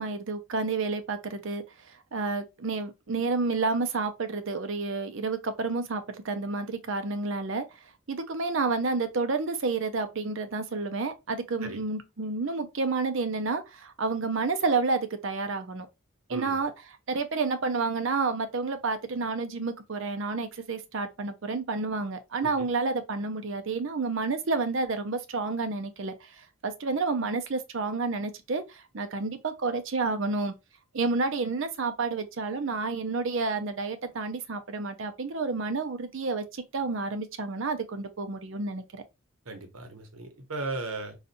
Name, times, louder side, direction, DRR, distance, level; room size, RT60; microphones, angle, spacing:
voice 1, 0.0-7.7 8.1-15.9 16.3-16.7 17.1-30.5 30.9-39.0, right 3 dB, 60° right, 0.6 m, -30 dB
voice 2, 39.5-41.2, right 2 dB, 80° right, 0.9 m, -36 dB
4.1 x 2.4 x 2.5 m
head